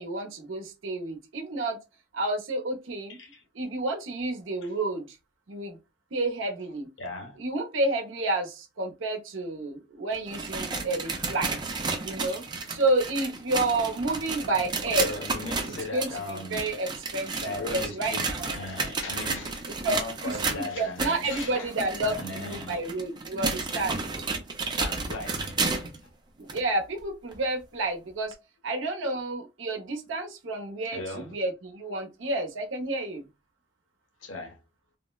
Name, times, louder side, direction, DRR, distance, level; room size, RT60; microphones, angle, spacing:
voice 1, 0.0-1.8 2.1-3.2 3.5-5.1 5.5-5.8 6.1-6.9 7.4-11.6 12.0-12.4 12.7-15.1 15.7-17.4 17.7-18.1 19.8-19.9 20.2-24.0 26.4-28.3 28.6-33.2, right 2 dB, 80° right, 0.7 m, -30 dB
voice 2, 3.1-3.4 4.6-4.8 7.0-7.4 15.0-16.7 17.4-21.7 22.0-22.9 24.0-24.1 24.8-26.1 30.9-31.4 34.2-34.6, left 2 dB, 75° left, 0.9 m, -38 dB
sound 1, 10.1-26.0 26.5-26.6 27.3-27.4 28.3-28.4, right 4 dB, 20° right, 0.4 m, -32 dB
3.6 x 2.0 x 2.3 m
head